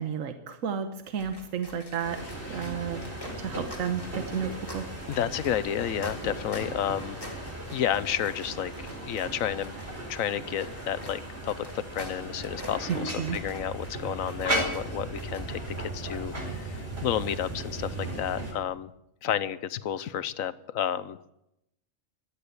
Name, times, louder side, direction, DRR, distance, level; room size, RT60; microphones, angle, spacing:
voice 1, 0.0-2.2 2.5-3.0 3.4-4.8 12.9-13.4, right 7 dB, 75° right, 8 dB, 1.4 m, -32 dB
sound 1, 1.0-15.7, left 1 dB, 15° left, 2.4 m, -47 dB
sound 2, 2.0-18.5, right 1 dB, 50° right, 4.9 m, -36 dB
voice 2, 5.1-7.2 7.7-9.7 10.1-18.9 19.2-21.2, left 10 dB, 85° left, 15 dB, 1.2 m, -31 dB
15.5 x 11.5 x 8.1 m, 0.85 s
omnidirectional pair, 1.4 m